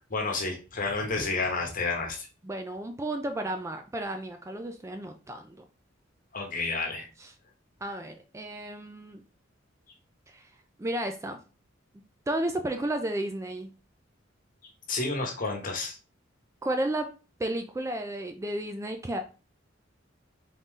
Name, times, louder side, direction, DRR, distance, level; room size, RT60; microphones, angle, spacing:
voice 1, 0.1-2.3 6.3-7.1 14.9-16.0, left 3 dB, 45° left, 1 dB, 1.1 m, -30 dB
voice 2, 2.4-5.7 7.2-7.3 7.8-9.2 10.3-10.5 10.8-11.4 12.3-13.7 16.6-17.1 17.4-19.2, right 1 dB, 15° right, 6 dB, 0.4 m, -33 dB
4.0 x 3.0 x 3.7 m, 0.33 s
head